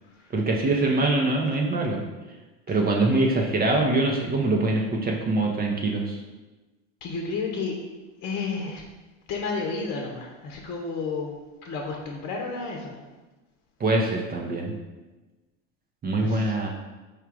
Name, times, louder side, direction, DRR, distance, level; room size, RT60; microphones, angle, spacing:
voice 1, 0.3-2.0 2.7-6.2 13.8-14.7 16.0-16.7, right 2 dB, 25° right, 0 dB, 0.6 m, -23 dB
voice 2, 7.0-7.8 8.2-8.8 9.3-13.0 16.2-16.6, left 4 dB, 45° left, 0 dB, 0.9 m, -32 dB
4.8 x 2.4 x 4.6 m, 1.1 s
hypercardioid pair, 95°, 38 cm